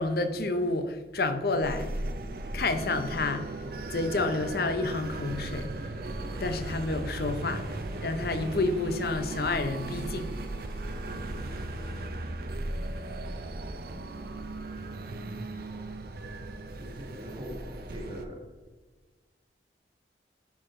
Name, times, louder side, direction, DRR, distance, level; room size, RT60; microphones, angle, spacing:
voice 1, 0.0-2.1 2.5-3.6 3.9-5.8 6.4-10.3, left 2 dB, 55° left, 8 dB, 0.7 m, -29 dB
sound 1, 1.6-18.3, right 2 dB, 55° right, 0.6 m, -37 dB
sound 2, 6.3-12.1, equal, 5° left, 1.2 m, -50 dB
voice 2, 16.8-18.5, equal, 25° right, 0 dB, 1.7 m, -42 dB
11.5 x 4.8 x 3.7 m, 1.3 s
head